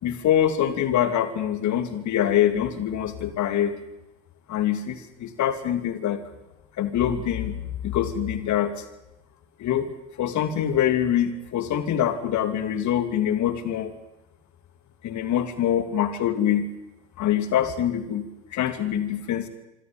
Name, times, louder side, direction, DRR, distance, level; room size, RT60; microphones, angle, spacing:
voice 1, 0.0-3.7 4.5-6.2 6.8-8.7 9.6-9.9 10.2-13.9 15.0-16.7 17.2-18.3 18.5-19.5, left 10 dB, 45° left, 10 dB, 2.9 m, -24 dB
26.0 x 25.0 x 5.2 m, 0.94 s
figure-of-eight pair, 60°, 39 cm